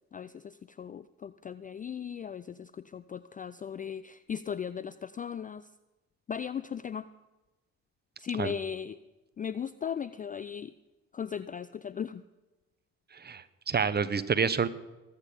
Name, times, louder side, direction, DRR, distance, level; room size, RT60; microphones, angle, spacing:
voice 1, 0.1-5.7 6.3-7.1 8.2-9.0 9.4-10.7 11.1-12.2, left 8 dB, 20° left, 15 dB, 0.4 m, -37 dB
voice 2, 13.1-14.7, right 6 dB, 25° right, 15 dB, 1.0 m, -28 dB
23.0 x 9.0 x 5.2 m, 1.1 s
hypercardioid pair, 60°, 41 cm